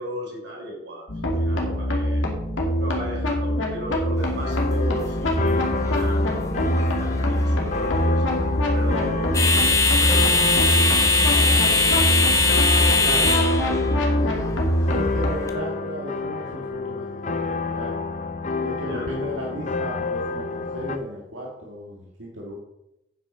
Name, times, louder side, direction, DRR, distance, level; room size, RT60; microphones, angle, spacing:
voice 1, 0.0-2.3 2.8-6.4 6.7-8.3 8.7-11.3 11.9-12.4 12.7-14.2 18.8-19.1, right 1 dB, 65° right, 0 dB, 3.6 m, -36 dB
sound 1, 1.1-15.3, equal, 90° left, 2.4 m, -23 dB
sound 2, 4.2-15.5, left 3 dB, 15° left, 0.9 m, -23 dB
sound 3, 4.4-21.0, left 3 dB, 40° left, 0.6 m, -29 dB
voice 2, 13.0-13.3 14.8-18.0 18.6-22.6, equal, 85° right, -2 dB, 1.8 m, -34 dB
9.4 x 7.9 x 5.2 m, 0.88 s
head